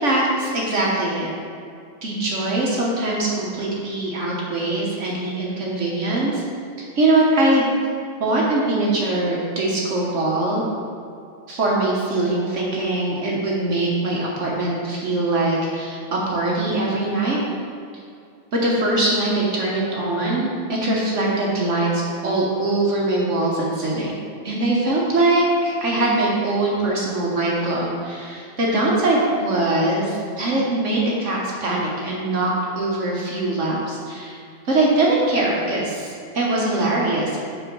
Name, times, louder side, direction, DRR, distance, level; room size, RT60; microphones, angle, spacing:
voice 1, 0.0-1.3 2.0-6.4 6.8-7.6 8.2-10.7 11.5-17.4 18.5-24.2 24.4-34.4 34.6-37.4, right 2 dB, 45° right, -4 dB, 1.1 m, -22 dB
5.5 x 4.4 x 6.1 m, 2.3 s
omnidirectional pair, 2.2 m